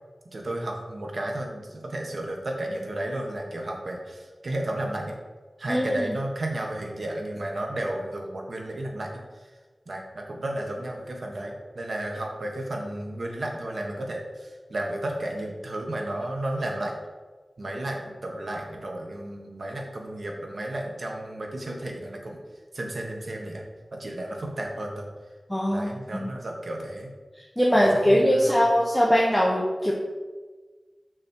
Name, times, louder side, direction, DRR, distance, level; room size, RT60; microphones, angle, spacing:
voice 1, 0.3-5.1 5.6-9.5 9.9-16.9 17.6-22.4 22.7-23.6 23.9-25.1 25.7-27.1 27.7-28.7, right 1 dB, 75° right, 1 dB, 1.4 m, -33 dB
voice 2, 5.7-6.0 25.5-26.3 27.6-29.9, equal, 5° left, -4 dB, 1.1 m, -21 dB
6.3 x 6.1 x 4.5 m, 1.3 s
wide cardioid pair, 75°, 0 cm